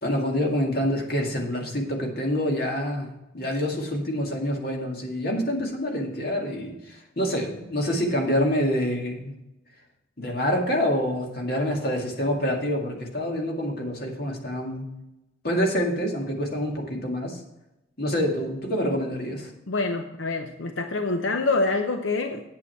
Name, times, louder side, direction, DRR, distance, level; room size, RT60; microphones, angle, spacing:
voice 1, 0.0-9.3 10.2-14.9 15.4-17.4 18.0-19.5, equal, 50° left, 0 dB, 2.1 m, -27 dB
voice 2, 19.7-22.5, left 3 dB, 85° left, 5 dB, 0.8 m, -26 dB
8.6 x 8.5 x 4.7 m, 0.91 s
head